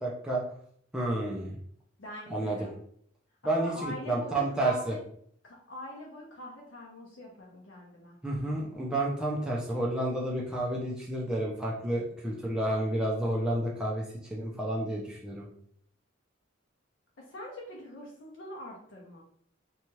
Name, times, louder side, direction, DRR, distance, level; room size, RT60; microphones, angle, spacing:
voice 1, 0.0-0.4 0.9-1.5 2.3-2.6 3.4-4.9 8.2-14.0 14.3-15.5, right 1 dB, 5° right, -5 dB, 0.4 m, -30 dB
voice 2, 2.0-2.7 3.6-5.0 5.4-8.2 17.2-19.2, left 1 dB, 70° left, -3 dB, 0.7 m, -43 dB
2.8 x 2.3 x 3.0 m, 0.63 s
head